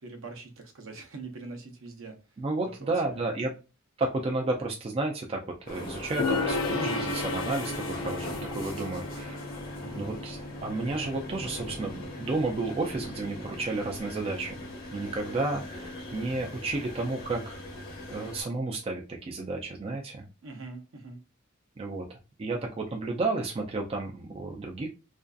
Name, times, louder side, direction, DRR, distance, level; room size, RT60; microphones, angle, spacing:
voice 1, 0.0-2.2 2.6-3.4 9.8-10.1 20.4-21.2, right 3 dB, 65° right, 4 dB, 0.6 m, -43 dB
voice 2, 2.4-3.5 4.0-9.6 9.9-10.4 10.6-17.6 18.1-20.3 21.8-24.9, right 3 dB, 25° right, 1 dB, 0.3 m, -32 dB
sound 1, 5.7-18.4, left 1 dB, 45° left, 0.8 m, -40 dB
Gong, 6.2-13.6, left 3 dB, 75° left, 0.6 m, -35 dB
2.5 x 2.3 x 2.2 m, 0.31 s
head